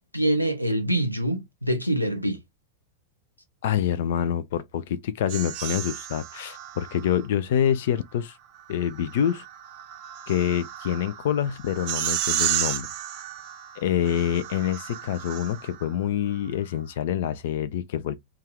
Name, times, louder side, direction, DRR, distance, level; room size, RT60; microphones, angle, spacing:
voice 1, 0.1-2.4, right 1 dB, 90° left, 0.7 m, -25 dB
voice 2, 3.6-8.4 8.7-9.4 10.3-12.9 13.8-18.2, left 9 dB, 55° left, 0.3 m, -26 dB
sound 1, 5.3-7.2 8.7-15.9, right 12 dB, 45° right, 0.5 m, -33 dB
2.6 x 2.3 x 3.5 m
figure-of-eight pair, 90°, 0 cm